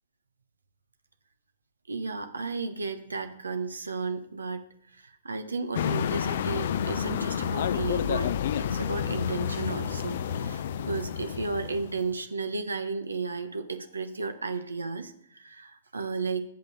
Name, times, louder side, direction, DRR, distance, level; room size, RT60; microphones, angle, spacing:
voice 1, 1.9-4.7 4.9-16.4, right 4 dB, 85° right, 8 dB, 1.0 m, -34 dB
sound 1, 5.7-12.1, left 8 dB, 60° left, 0.5 m, -30 dB
8.1 x 6.7 x 6.6 m, 0.72 s
hypercardioid pair, 120°, 0 cm